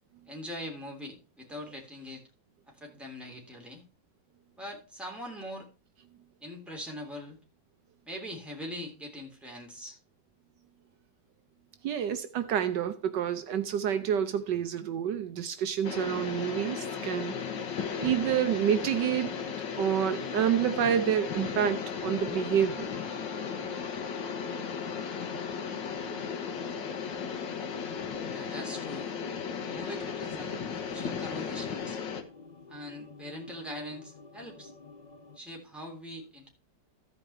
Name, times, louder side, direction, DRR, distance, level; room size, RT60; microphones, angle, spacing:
voice 1, 0.3-2.2 2.7-3.8 4.6-5.7 6.4-7.4 8.0-10.0 28.3-29.2 29.7-32.0 32.7-34.7 35.3-36.5, equal, ahead, 3.2 m, -42 dB
voice 2, 11.8-17.4 18.0-19.4 19.8-22.9, right 9 dB, 75° right, 1.4 m, -28 dB
sound 1, 15.8-32.2, left 6 dB, 80° left, 1.8 m, -36 dB
sound 2, 15.9-35.4, left 5 dB, 50° left, 0.5 m, -47 dB
15.0 x 5.2 x 4.4 m
omnidirectional pair, 1.9 m